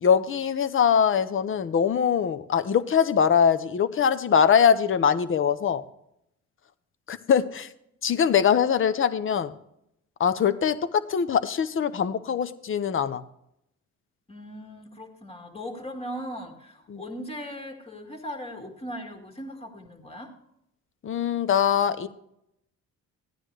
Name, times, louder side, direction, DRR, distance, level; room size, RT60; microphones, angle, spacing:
voice 1, 0.0-5.8 7.1-7.7 8.0-9.5 10.2-13.2 16.9-17.0 21.0-22.1, left 7 dB, 45° left, 12 dB, 0.8 m, -22 dB
voice 2, 14.3-20.3, equal, 20° left, 1 dB, 1.9 m, -38 dB
15.0 x 9.8 x 3.2 m, 0.77 s
cardioid pair, 90°, 30 cm